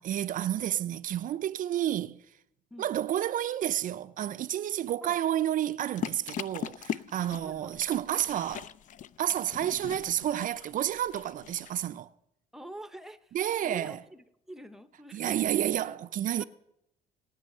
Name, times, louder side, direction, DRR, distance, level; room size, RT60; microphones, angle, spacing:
voice 1, 0.0-2.2 2.8-8.7 9.2-12.1 13.3-14.0 15.1-16.4, right 11 dB, 50° right, 0.5 m, -30 dB
sound 1, 6.0-11.9, left 9 dB, 50° left, 0.4 m, -40 dB
voice 2, 7.2-7.8 12.5-13.3 13.6-15.5 16.4-16.5, right 1 dB, ahead, 0.8 m, -46 dB
18.5 x 9.1 x 6.5 m
cardioid pair, 110°, 17 cm